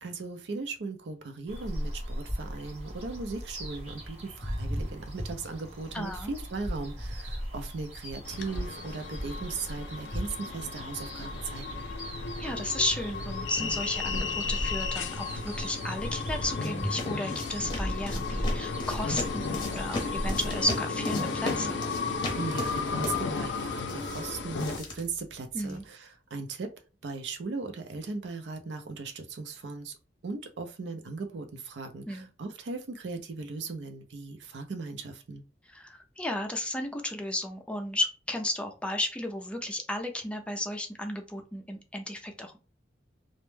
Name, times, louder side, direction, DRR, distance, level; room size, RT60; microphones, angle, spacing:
voice 1, 0.0-11.9 22.4-26.7 27.0-30.0 30.2-35.4, right 4 dB, 75° right, 6 dB, 0.5 m, -38 dB
sound 1, 1.5-20.7, equal, 40° right, 0.8 m, -37 dB
voice 2, 5.9-6.3 12.4-21.8 25.5-25.8 32.1-32.3 35.7-42.6, left 1 dB, 5° left, 3 dB, 0.4 m, -33 dB
sound 2, 8.3-24.8, left 4 dB, 90° left, 0.4 m, -34 dB
sound 3, 15.9-25.9, left 2 dB, 25° left, 0.7 m, -39 dB
2.1 x 2.0 x 3.1 m, 0.35 s
head